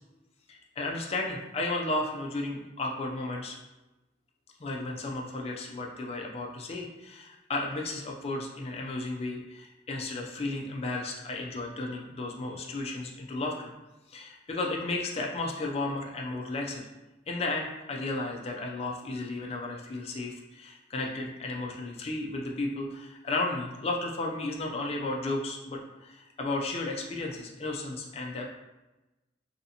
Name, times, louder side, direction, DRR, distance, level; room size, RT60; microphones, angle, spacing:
voice 1, 0.5-3.6 4.6-13.7 14.1-16.8 17.3-28.4, left 2 dB, 35° left, 0 dB, 0.4 m, -34 dB
3.2 x 2.6 x 2.7 m, 1.0 s
head